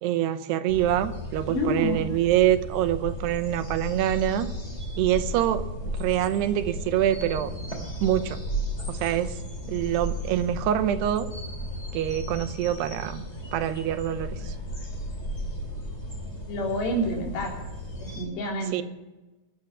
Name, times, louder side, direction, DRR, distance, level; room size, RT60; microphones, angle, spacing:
voice 1, 0.0-4.5 5.0-5.6 5.9-7.5 8.0-8.4 8.9-9.4 9.7-11.3 11.9-14.5 18.7-18.8, right 11 dB, 80° right, 11 dB, 2.9 m, -25 dB
sound 1, 0.7-18.2, equal, 20° left, 2.7 m, -35 dB
voice 2, 1.5-2.1 16.5-17.6 18.0-18.7, equal, 85° left, 0 dB, 5.6 m, -28 dB
21.5 x 9.1 x 7.1 m, 1.1 s
omnidirectional pair, 4.8 m